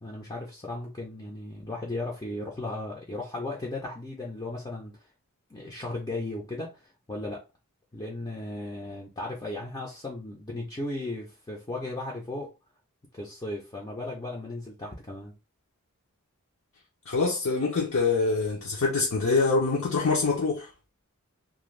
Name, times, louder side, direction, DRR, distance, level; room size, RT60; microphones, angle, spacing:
voice 1, 0.0-4.9 5.5-7.4 7.9-12.5 13.1-15.3, left 2 dB, 20° left, 0.5 m, -36 dB
voice 2, 17.1-20.7, left 4 dB, 65° left, 0.6 m, -25 dB
2.5 x 2.2 x 3.1 m
head